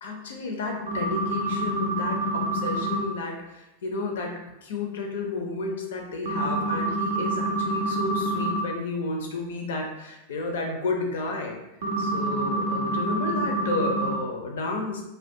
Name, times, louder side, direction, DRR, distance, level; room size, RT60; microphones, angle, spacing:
voice 1, 0.0-4.3 4.6-11.6 12.0-15.0, left 3 dB, 60° left, 2 dB, 0.4 m, -32 dB
sound 1, 0.9-3.0 6.3-8.6 11.8-14.2, right 1 dB, 60° right, 0.4 m, -27 dB
2.2 x 2.1 x 2.6 m, 0.91 s
figure-of-eight pair, 90°, 0 cm